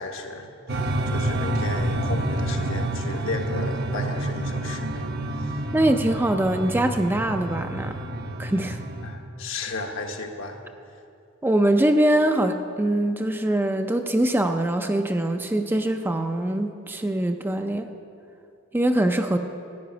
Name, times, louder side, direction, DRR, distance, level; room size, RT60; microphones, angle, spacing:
voice 1, 0.0-5.1 5.4-5.6 9.0-10.6, left 2 dB, 65° left, 3 dB, 1.2 m, -34 dB
sound 1, 0.7-9.1, right 1 dB, 50° right, 0.9 m, -28 dB
voice 2, 5.7-7.9 8.4-8.8 11.4-17.9 18.7-19.4, right 1 dB, 10° right, 6 dB, 0.4 m, -23 dB
14.0 x 5.9 x 9.3 m, 2.5 s
head